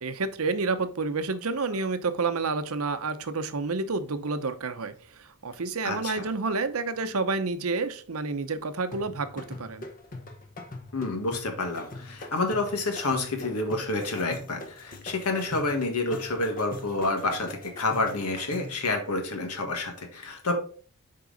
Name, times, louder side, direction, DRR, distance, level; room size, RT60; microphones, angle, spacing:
voice 1, 0.0-4.9 5.4-9.8, right 3 dB, 70° right, 11 dB, 0.8 m, -29 dB
voice 2, 5.8-6.3 10.9-20.5, left 2 dB, 85° left, 4 dB, 1.7 m, -29 dB
sound 1, 8.9-18.8, left 2 dB, 40° left, 1.0 m, -42 dB
7.7 x 4.7 x 4.0 m, 0.43 s
head